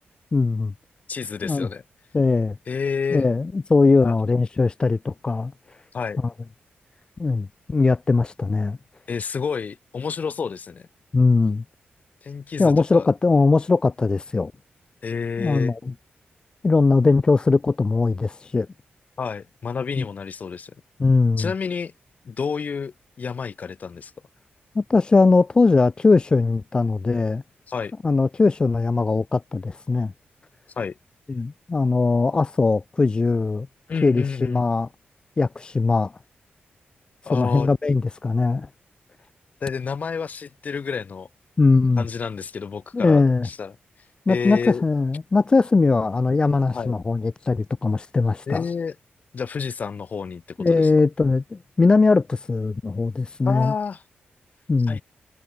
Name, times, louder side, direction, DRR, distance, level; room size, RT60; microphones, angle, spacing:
voice 1, 0.3-0.7 1.4-1.7 2.1-2.6 3.1-5.5 7.2-8.8 11.1-11.6 12.6-14.5 15.4-15.9 16.6-18.7 20.0-20.1 21.0-21.5 24.8-27.4 28.0-30.1 31.3-33.7 34.0-34.9 35.4-36.1 37.3-38.7 41.6-42.1 42.9-43.5 44.3-48.6 50.6-53.7 54.7-55.0, left 3 dB, 25° left, 0.5 m, -20 dB
voice 2, 1.1-1.8 2.7-3.2 4.0-4.1 5.9-6.2 9.1-10.9 12.2-13.1 15.0-15.7 19.2-20.7 21.4-21.9 22.2-24.1 27.7-27.9 30.8-31.0 33.9-34.7 37.2-37.7 39.6-41.3 42.0-43.7 44.3-44.8 46.7-46.9 48.5-48.9 49.3-50.9 53.4-54.0 54.9-55.0, left 5 dB, 40° left, 1.6 m, -29 dB
wide cardioid pair, 180°, 4 cm